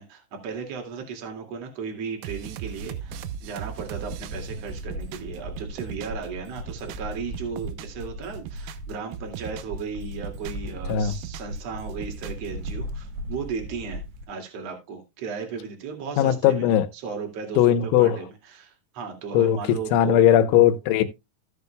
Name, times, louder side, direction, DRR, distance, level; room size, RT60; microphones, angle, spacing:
voice 1, 0.0-14.0 14.3-20.2, right 5 dB, 40° right, 2.5 m, -36 dB
sound 1, 2.2-6.3 6.6-8.0 8.3-9.8 10.1-11.6 11.9-12.9, right 11 dB, 90° right, 3.5 m, -39 dB
sound 2, 2.7-14.3, equal, 70° right, 3.3 m, -37 dB
voice 2, 16.2-16.9 17.6-18.2 19.3-19.6 19.9-21.0, left 10 dB, 75° left, 3.2 m, -18 dB
16.5 x 6.9 x 2.3 m
omnidirectional pair, 5.9 m